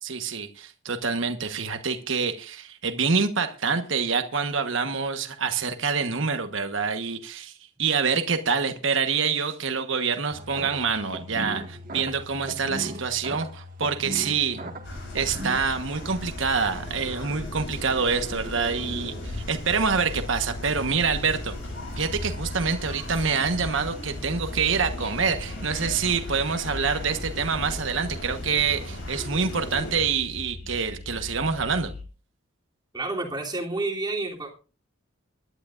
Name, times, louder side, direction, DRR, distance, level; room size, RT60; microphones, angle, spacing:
voice 1, 0.0-14.6 15.1-21.5 22.0-31.9, right 5 dB, 65° right, 8 dB, 1.2 m, -26 dB
sound 1, 10.3-15.6, equal, 45° right, 1.7 m, -37 dB
sound 2, 14.8-30.1, left 1 dB, 60° left, 7.3 m, -36 dB
sound 3, 21.0-32.0, left 2 dB, 40° left, 4.4 m, -43 dB
voice 2, 32.9-34.5, right 2 dB, 20° right, -1 dB, 3.1 m, -29 dB
23.5 x 11.5 x 2.5 m, 0.35 s
head